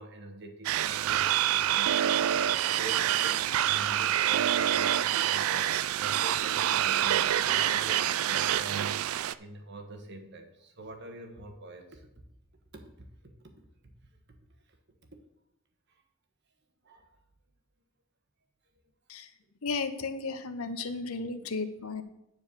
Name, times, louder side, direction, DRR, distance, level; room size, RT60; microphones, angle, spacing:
voice 1, 0.0-12.1 12.7-13.3 14.1-14.2 15.9-16.0 16.8-17.2, right 2 dB, 50° right, 5 dB, 1.3 m, -45 dB
sound 1, 0.6-9.3, right 11 dB, 75° right, 0.4 m, -27 dB
voice 2, 19.6-22.0, left 4 dB, 80° left, 9 dB, 0.8 m, -34 dB
9.9 x 4.6 x 6.9 m, 0.88 s
head